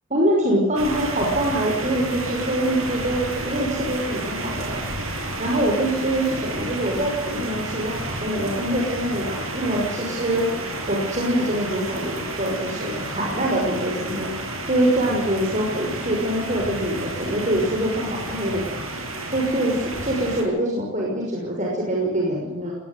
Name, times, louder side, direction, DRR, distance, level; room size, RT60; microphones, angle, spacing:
voice 1, 0.1-4.8 5.4-10.5 10.9-14.3 14.7-18.8 19.3-22.7, right 1 dB, 35° right, -2 dB, 6.0 m, -24 dB
sound 1, 0.7-20.4, right 2 dB, 75° right, 7.6 m, -31 dB
20.0 x 18.5 x 9.6 m, 1.0 s
head